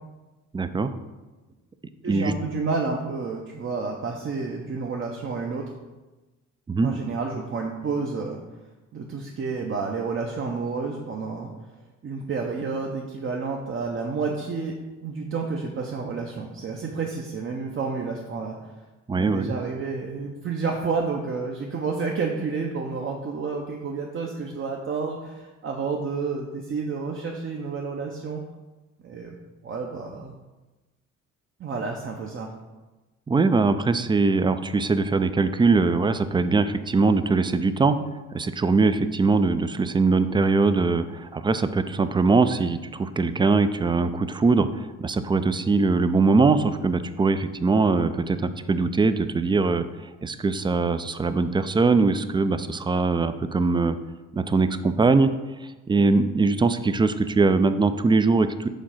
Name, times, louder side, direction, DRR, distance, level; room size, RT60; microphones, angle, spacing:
voice 1, 0.5-0.9 2.1-2.3 6.7-6.9 19.1-19.5 33.3-38.0 38.3-49.8 50.2-54.0 54.3-55.3 55.9-58.7, right 4 dB, 15° right, 11 dB, 0.3 m, -21 dB
voice 2, 2.0-5.6 6.8-8.4 8.9-11.5 12.0-14.7 15.0-18.7 19.1-28.4 29.0-29.3 29.6-30.3 31.6-32.5, right 4 dB, 45° right, 0 dB, 0.7 m, -30 dB
5.1 x 3.6 x 5.6 m, 1.2 s
cardioid pair, 90°, 30 cm